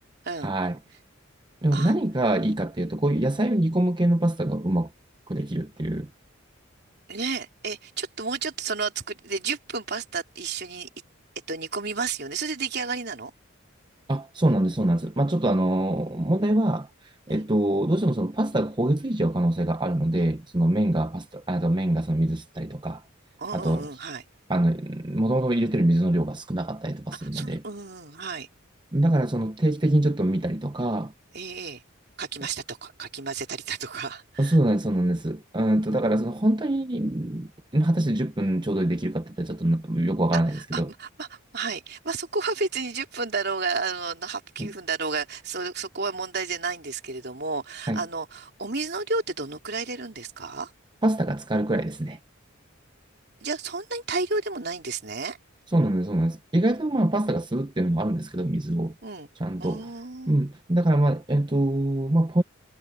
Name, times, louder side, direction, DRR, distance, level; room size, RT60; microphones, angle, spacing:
voice 1, 0.4-0.8 1.6-4.9 5.3-6.1 14.1-23.0 23.5-23.9 24.5-27.6 28.9-31.1 34.4-40.9 44.6-44.7 47.9-48.0 51.0-52.2 55.7-58.9 59.4-59.9 60.3-62.4, right 1 dB, 20° right, 0.8 m, -24 dB
voice 2, 7.1-10.9 11.5-13.3 17.3-17.5 23.4-24.2 27.2-28.5 31.3-31.8 32.2-34.6 40.3-50.7 53.4-55.4 59.0-59.3 59.6-60.4, right 4 dB, 50° right, 3.6 m, -32 dB
head